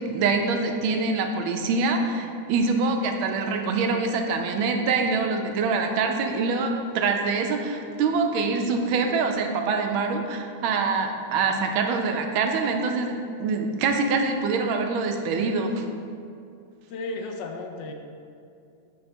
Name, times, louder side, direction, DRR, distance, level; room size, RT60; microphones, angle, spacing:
voice 1, 0.0-15.8, right 4 dB, 90° right, 4 dB, 1.5 m, -25 dB
voice 2, 16.9-17.9, left 2 dB, 75° left, 3 dB, 1.1 m, -33 dB
7.8 x 3.4 x 4.3 m, 2.5 s
omnidirectional pair, 2.2 m